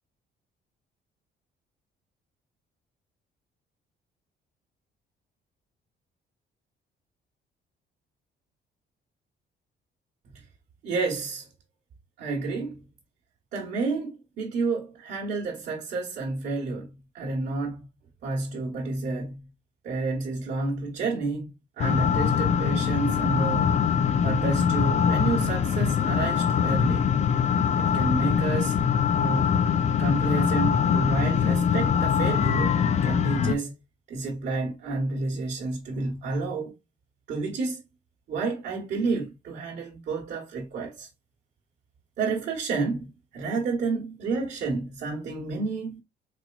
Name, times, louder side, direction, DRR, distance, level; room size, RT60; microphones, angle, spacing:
voice 1, 10.8-11.5 12.2-12.8 13.5-17.9 18.2-19.5 19.8-23.7 24.2-27.1 27.8-28.7 29.2-29.5 30.0-33.7 34.1-36.7 37.3-37.8 38.3-41.1 42.2-46.0, right 3 dB, 60° right, 1.1 m, -30 dB
sound 1, 21.8-33.5, left 7 dB, 35° left, 0.4 m, -23 dB
4.1 x 3.0 x 2.3 m
cardioid pair, 140°, 19 cm